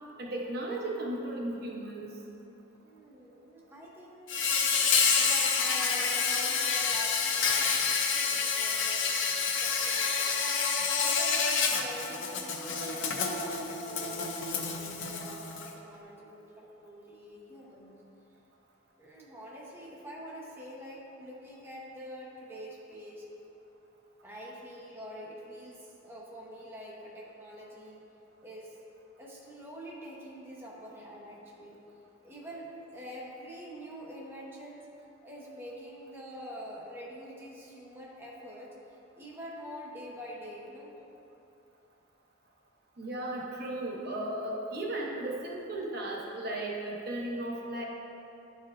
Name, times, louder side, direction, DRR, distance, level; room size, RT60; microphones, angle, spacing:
voice 1, 0.2-2.2 43.0-47.8, right 1 dB, 55° right, -2 dB, 0.8 m, -35 dB
voice 2, 2.8-4.6 5.2-7.7 8.1-9.1 9.3-10.3 11.0-13.1 13.4-17.9 19.0-23.3 24.2-28.0 28.4-28.8 29.2-31.8 32.2-34.9 35.2-41.0, equal, 10° right, -5 dB, 0.7 m, -45 dB
Insect, 4.3-15.7, left 5 dB, 75° left, 0.6 m, -28 dB
10.5 x 4.2 x 2.5 m, 2.9 s
head